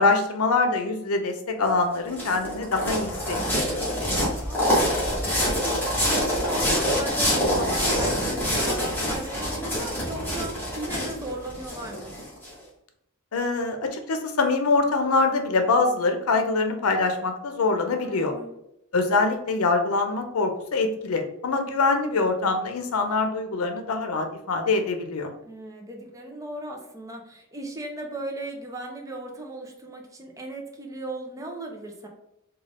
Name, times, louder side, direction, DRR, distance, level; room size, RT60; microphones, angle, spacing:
voice 1, 0.0-4.3 13.3-18.3 18.9-25.3, left 3 dB, 90° left, 6 dB, 0.6 m, -24 dB
sound 1, 1.7-12.5, equal, 10° left, 1.4 m, -26 dB
voice 2, 4.5-12.1 17.9-18.5 25.4-32.1, right 1 dB, 15° right, 1 dB, 0.6 m, -37 dB
3.7 x 2.4 x 3.3 m, 0.82 s
head